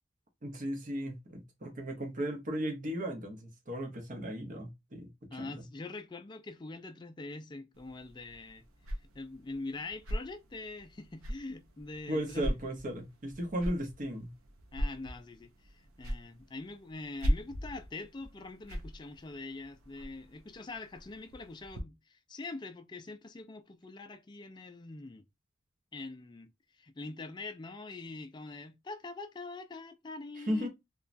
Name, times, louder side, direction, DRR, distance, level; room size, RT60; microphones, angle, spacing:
voice 1, 0.4-5.1 5.4-5.6 12.1-14.3 30.5-30.7, equal, 40° right, 0.7 m, -36 dB
voice 2, 5.3-8.6 9.0-12.6 14.7-25.2 25.9-30.7, left 3 dB, 20° left, 0.3 m, -44 dB
sound 1, 7.7-21.8, equal, 85° right, 0.6 m, -40 dB
3.0 x 2.2 x 2.5 m
head